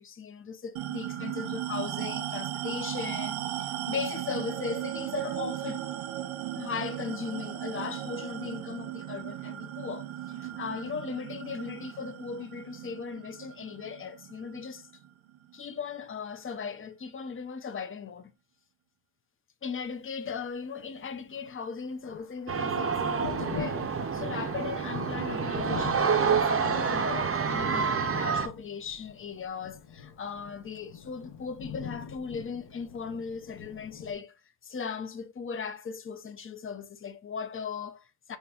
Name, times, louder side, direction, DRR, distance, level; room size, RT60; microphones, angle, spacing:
voice 1, 0.0-5.9 6.6-14.9 15.5-18.3 19.6-38.4, left 6 dB, 30° left, 0.4 m, -38 dB
sound 1, 0.8-15.6, right 12 dB, 80° right, 0.6 m, -37 dB
Thunder, 21.3-34.1, left 6 dB, 60° left, 0.9 m, -44 dB
sound 2, 22.5-28.5, right 6 dB, 30° right, 0.5 m, -28 dB
5.5 x 3.3 x 2.3 m
wide cardioid pair, 160°, 48 cm